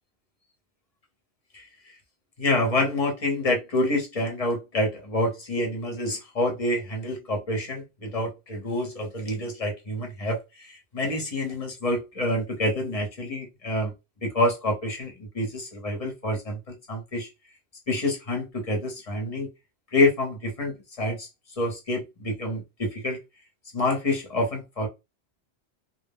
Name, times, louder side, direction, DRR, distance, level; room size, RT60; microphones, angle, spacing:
voice 1, 2.4-13.9 14.2-17.3 17.9-19.5 19.9-21.3 21.6-23.2 23.7-24.9, left 1 dB, 35° left, 0.8 m, -27 dB
2.2 x 2.0 x 3.5 m
omnidirectional pair, 1.2 m